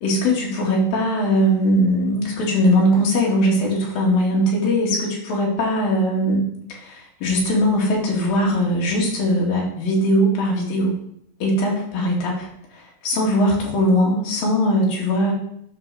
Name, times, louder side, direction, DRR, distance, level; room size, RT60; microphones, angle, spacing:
voice 1, 0.0-11.0 11.4-15.3, equal, 60° left, -3 dB, 3.6 m, -20 dB
9.6 x 4.1 x 6.7 m, 0.72 s
omnidirectional pair, 5.0 m